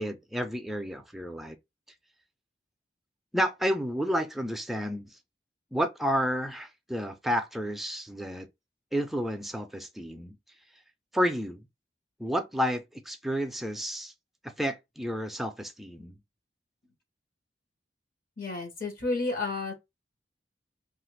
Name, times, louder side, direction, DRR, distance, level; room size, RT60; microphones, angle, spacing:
voice 1, 0.0-1.6 3.3-5.1 5.7-8.5 8.9-10.4 11.1-11.6 12.2-14.1 14.4-16.2, equal, ahead, 0.4 m, -31 dB
voice 2, 18.4-19.7, left 3 dB, 55° left, 0.9 m, -31 dB
2.8 x 2.4 x 3.1 m
head